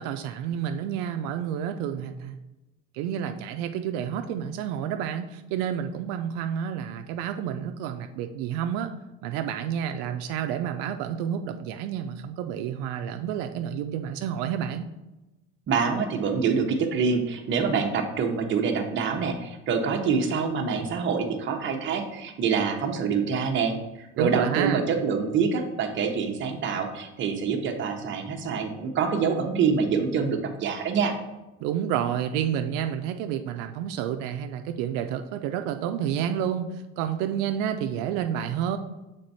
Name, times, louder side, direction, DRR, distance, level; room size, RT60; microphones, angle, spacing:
voice 1, 0.0-2.4 2.9-8.9 9.2-14.9 24.2-24.8 31.6-38.8, right 9 dB, 85° right, 7 dB, 0.5 m, -29 dB
voice 2, 15.7-31.2, right 5 dB, 40° right, 3 dB, 0.8 m, -26 dB
6.6 x 3.5 x 4.1 m, 1.0 s
cardioid pair, 135°, 31 cm